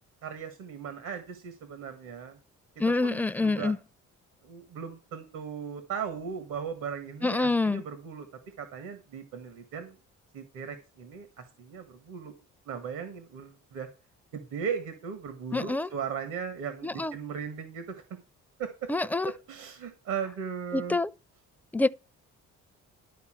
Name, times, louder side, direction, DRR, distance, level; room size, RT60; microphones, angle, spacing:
voice 1, 0.2-2.4 3.0-3.7 4.4-8.3 8.6-10.0 10.3-12.3 12.7-13.9 14.3-18.0 18.6-18.9 19.3-21.0, right 7 dB, 80° right, 1.7 m, -37 dB
voice 2, 2.8-3.8 7.2-7.8 15.5-15.9 16.8-17.2 18.9-19.3 20.7-21.1 21.7-21.9, left 3 dB, 5° left, 0.5 m, -26 dB
12.5 x 4.4 x 7.6 m
cardioid pair, 90°, 30 cm